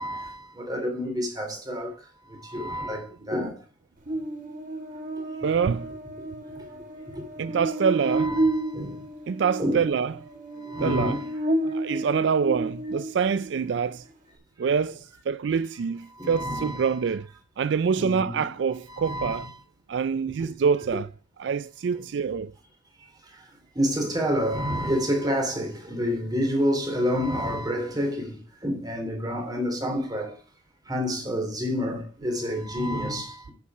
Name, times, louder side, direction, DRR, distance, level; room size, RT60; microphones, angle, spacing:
voice 1, 0.0-1.9 2.3-3.6 7.1-7.2 8.0-9.0 9.6-9.9 10.6-11.3 16.1-16.9 18.0-18.5 18.9-19.5 20.1-20.2 21.9-22.0 23.7-30.4 30.9-33.5, equal, 20° right, 3.0 m, -29 dB
Buzz, 4.1-13.5, right 2 dB, 45° right, 1.9 m, -31 dB
voice 2, 5.4-5.9 7.4-8.3 9.3-10.2 10.8-11.2 11.7-14.0 14.6-17.3 17.6-19.5 19.9-21.1 21.4-22.5, right 6 dB, 70° right, 0.4 m, -25 dB
9.3 x 7.2 x 4.8 m
head